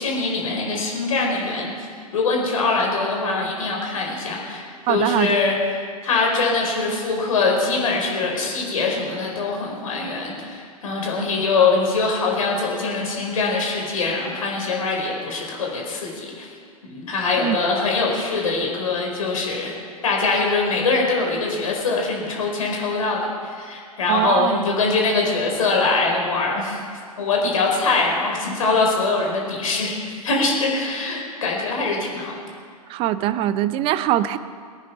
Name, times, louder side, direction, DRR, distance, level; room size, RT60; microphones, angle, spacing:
voice 1, 0.0-1.7 2.1-5.6 6.0-16.5 16.8-19.7 20.0-26.8 27.2-32.4, left 3 dB, 60° left, -1 dB, 5.1 m, -23 dB
voice 2, 4.9-5.4 17.4-17.6 24.1-24.6 27.4-27.5 32.9-34.4, right 13 dB, 30° right, 14 dB, 0.6 m, -22 dB
22.0 x 9.6 x 6.0 m, 2.1 s
figure-of-eight pair, 105°, 19 cm